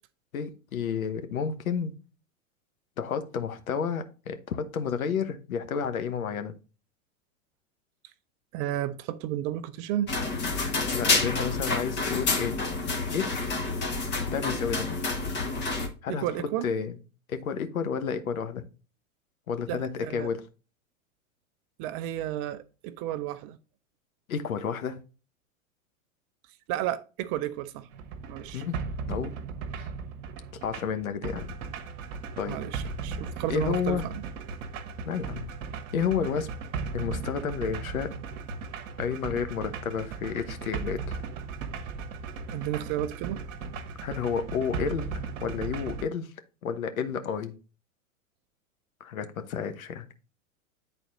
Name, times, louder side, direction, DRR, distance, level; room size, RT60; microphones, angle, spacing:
voice 1, 0.3-2.0 3.0-6.5 10.9-12.6 13.1-13.5 14.3-14.9 16.0-17.0 17.3-18.6 19.5-20.4 24.3-25.0 28.5-28.7 29.1-29.4 29.8-29.9 30.6-31.5 32.4-32.6 33.5-34.1 35.0-35.5 35.9-36.5 36.9-38.1 39.0-41.2 44.0-45.1 45.4-46.3 46.6-47.5 49.0-50.1, left 7 dB, 75° left, 1.1 m, -31 dB
voice 2, 8.5-10.1 16.1-16.7 19.7-20.3 21.8-23.6 26.7-27.9 28.3-28.6 32.5-34.2 42.5-43.4, right 12 dB, 30° right, 0.4 m, -32 dB
sound 1, 10.1-15.9, left 3 dB, 25° left, 1.1 m, -28 dB
sound 2, 27.9-46.0, right 5 dB, 60° right, 1.1 m, -37 dB
9.0 x 4.1 x 3.9 m
hypercardioid pair, 100°, 42 cm